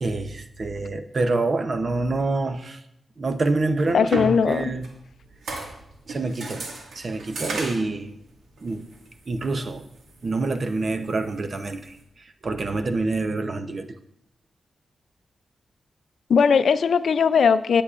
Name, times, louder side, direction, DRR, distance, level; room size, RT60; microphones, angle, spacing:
voice 1, 0.0-2.8 3.2-4.9 6.1-6.7 6.9-8.1 8.6-8.9 9.3-9.9 10.2-14.0, right 3 dB, 50° right, 0.8 m, -27 dB
sound 1, 3.6-12.0, right 3 dB, 90° right, 1.9 m, -37 dB
voice 2, 3.9-4.6 16.3-17.8, left 6 dB, 75° left, 0.4 m, -19 dB
18.0 x 8.5 x 2.5 m
wide cardioid pair, 100°, 0 cm